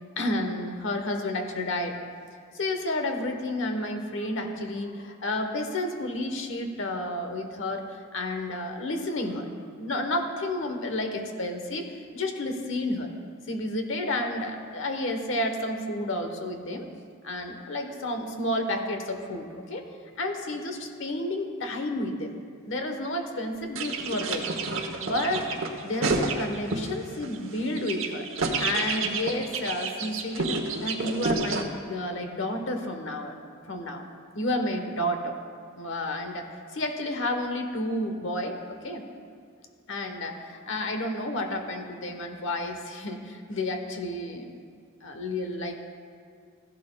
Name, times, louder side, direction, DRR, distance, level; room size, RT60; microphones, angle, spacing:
voice 1, 0.0-2.0 2.5-7.8 8.1-9.5 9.8-11.9 12.1-13.1 13.5-16.9 17.2-19.9 20.2-22.3 22.7-24.5 25.0-28.3 28.6-33.4 33.7-34.0 34.3-35.4 35.8-38.6 38.8-39.0 39.9-44.5 45.0-45.8, left 1 dB, 65° left, 5 dB, 1.1 m, -31 dB
sound 1, 23.8-26.9 27.2-31.6, right 3 dB, 70° right, 1.0 m, -29 dB
15.5 x 11.0 x 2.3 m, 2.1 s
head